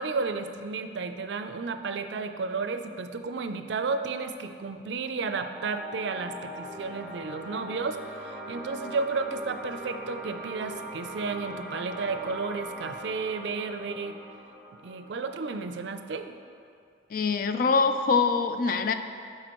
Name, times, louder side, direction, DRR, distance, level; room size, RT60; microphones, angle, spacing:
voice 1, 0.0-14.2 14.8-16.3, right 4 dB, 70° right, 8 dB, 0.4 m, -32 dB
sound 1, 5.5-16.6, right 1 dB, 5° right, 0.9 m, -41 dB
voice 2, 17.1-18.9, left 4 dB, 50° left, 8 dB, 0.4 m, -24 dB
11.5 x 4.8 x 3.0 m, 2.4 s
head